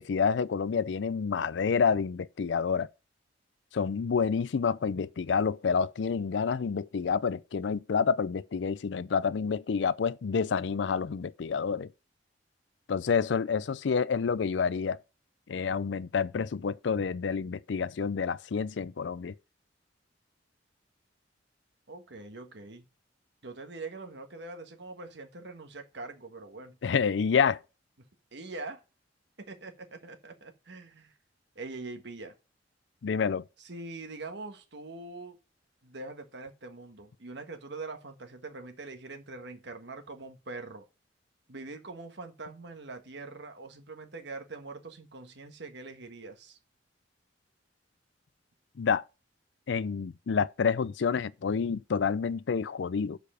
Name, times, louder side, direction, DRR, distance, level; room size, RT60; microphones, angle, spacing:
voice 1, 0.0-2.9 3.7-11.9 12.9-15.0 15.5-19.3 26.8-27.6 33.0-33.4 48.8-49.0 49.7-53.2, left 6 dB, 75° left, 0.4 m, -28 dB
voice 2, 21.9-22.8 23.4-26.8 28.3-28.8 29.4-31.1 31.5-32.3 33.6-35.4 35.8-40.8 41.5-46.6, right 3 dB, 70° right, 1.4 m, -43 dB
6.8 x 5.0 x 6.3 m
head